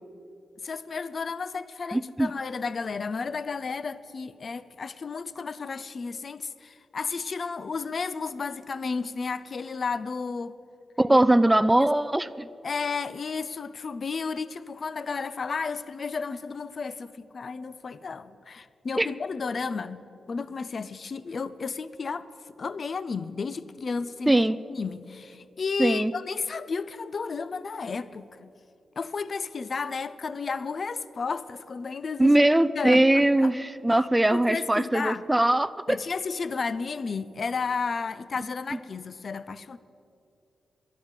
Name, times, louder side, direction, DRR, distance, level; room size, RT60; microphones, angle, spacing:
voice 1, 0.6-10.6 11.8-11.9 12.6-22.3 22.6-28.5 29.0-32.4 32.8-33.5 33.9-35.3 35.9-39.8, left 5 dB, 55° left, 15 dB, 0.6 m, -33 dB
voice 2, 1.9-2.3 11.0-12.5 19.0-19.1 24.3-24.6 25.8-26.1 32.2-36.0, right 1 dB, 15° right, 14 dB, 0.4 m, -21 dB
11.5 x 11.0 x 8.3 m, 2.5 s
cardioid pair, 70°, 0 cm